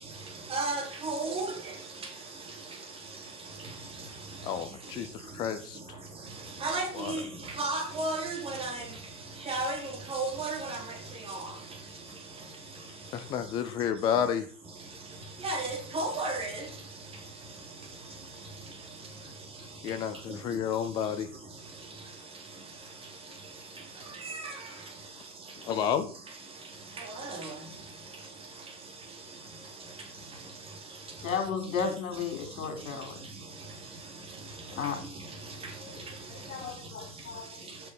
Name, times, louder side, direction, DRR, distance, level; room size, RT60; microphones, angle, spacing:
voice 1, 0.5-1.8 6.6-9.0 9.4-11.5 15.4-16.7 24.2-24.7 27.0-27.6 35.0-35.1 35.5-35.7, right 2 dB, 10° right, 3.5 m, -33 dB
voice 2, 4.4-5.1 5.3-5.8 7.0-7.1 13.1-14.5 19.8-21.3 25.7-26.1, left 8 dB, 10° left, 0.6 m, -30 dB
voice 3, 31.2-33.2 34.7-35.0 35.8-36.0 36.5-37.6, left 6 dB, 50° left, 4.8 m, -34 dB
13.5 x 8.8 x 5.7 m
figure-of-eight pair, 120°, 49 cm